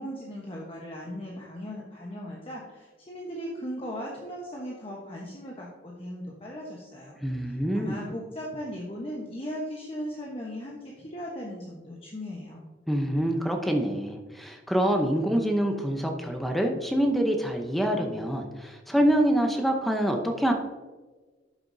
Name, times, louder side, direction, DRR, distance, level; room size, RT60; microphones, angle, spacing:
voice 1, 0.0-12.7, equal, 30° left, -3 dB, 1.1 m, -38 dB
voice 2, 7.2-8.0 12.9-20.5, equal, ahead, 3 dB, 0.7 m, -26 dB
11.5 x 6.8 x 2.7 m, 1.3 s
head